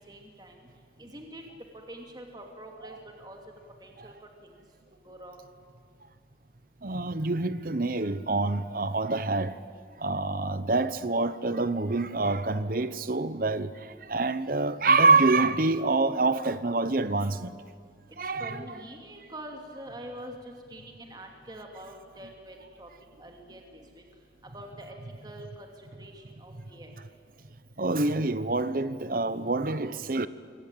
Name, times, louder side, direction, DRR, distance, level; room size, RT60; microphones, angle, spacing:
voice 1, 0.1-0.6 1.0-1.4 1.9-3.4 3.8-4.1 4.4-4.5 5.0-5.4 18.4-22.9 23.2-24.0 24.5-24.9 25.2-26.9, right 1 dB, 20° right, 2.7 m, -45 dB
voice 2, 6.8-9.6 10.0-17.5 18.2-18.6 27.8-30.3, right 3 dB, 50° right, 0.9 m, -26 dB
27.5 x 23.5 x 9.2 m
head